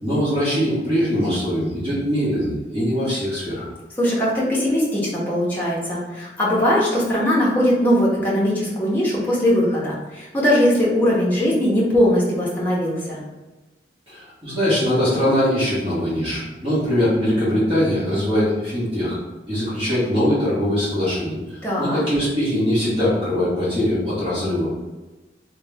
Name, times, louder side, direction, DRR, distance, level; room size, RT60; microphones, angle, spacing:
voice 1, 0.0-3.7 14.1-19.2 19.5-24.7, equal, 30° right, -11 dB, 1.3 m, -22 dB
voice 2, 4.0-13.2 21.6-22.0, equal, 10° left, -7 dB, 0.8 m, -20 dB
3.3 x 2.2 x 3.3 m, 1.1 s
head